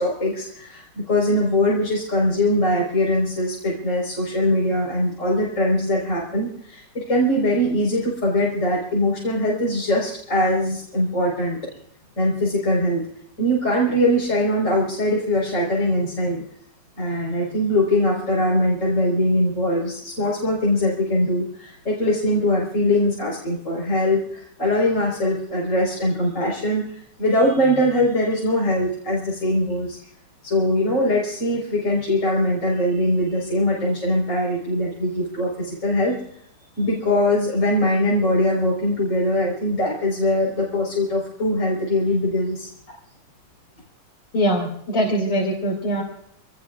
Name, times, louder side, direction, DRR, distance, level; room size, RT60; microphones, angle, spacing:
voice 1, 0.0-11.6 12.2-13.1 13.4-16.4 17.0-30.0 30.4-36.2 36.8-42.7, left 1 dB, 45° left, -4 dB, 4.9 m, -22 dB
voice 2, 44.3-46.0, equal, 80° left, -1 dB, 3.3 m, -22 dB
26.5 x 19.5 x 2.4 m, 0.69 s
omnidirectional pair, 1.9 m